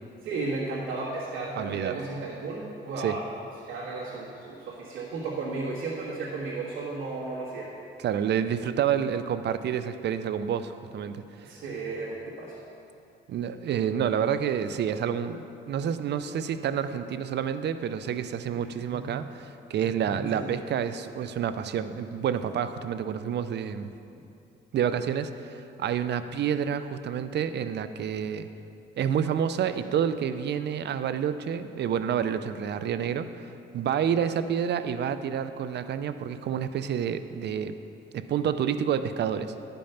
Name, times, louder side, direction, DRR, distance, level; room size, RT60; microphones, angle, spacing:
voice 1, 0.2-3.3 3.7-7.7 11.4-12.6 18.5-19.2 19.8-20.6, right 3 dB, 75° right, -8 dB, 1.7 m, -34 dB
voice 2, 1.6-2.0 3.0-3.2 8.0-11.5 13.3-23.9 24.7-28.5 29.0-37.7 38.1-39.7, right 8 dB, 60° right, 11 dB, 0.5 m, -29 dB
11.5 x 5.3 x 5.7 m, 2.7 s
cardioid pair, 90°, 20 cm